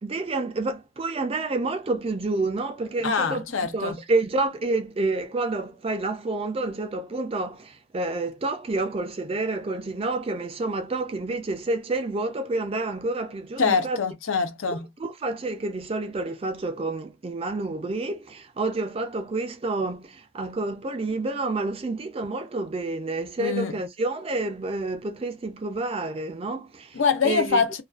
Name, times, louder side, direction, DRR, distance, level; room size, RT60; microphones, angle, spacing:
voice 1, 0.0-3.4 3.7-14.0 14.7-27.0 27.2-27.6, right 2 dB, 25° right, 0.3 m, -29 dB
voice 2, 3.0-4.0 13.6-14.9 23.4-23.8 26.9-27.8, left 5 dB, 65° left, 0.5 m, -24 dB
2.3 x 2.3 x 2.3 m
head